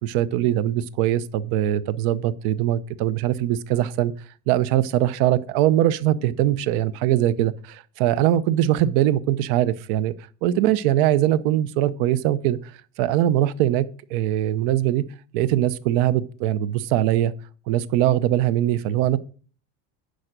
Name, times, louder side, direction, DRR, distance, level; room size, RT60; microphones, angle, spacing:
voice 1, 0.0-4.1 4.5-10.1 10.4-12.7 13.0-15.0 15.3-17.3 17.7-19.2, right 12 dB, 80° right, 0.8 m, -21 dB
10.5 x 5.0 x 6.7 m
cardioid pair, 170°, 38 cm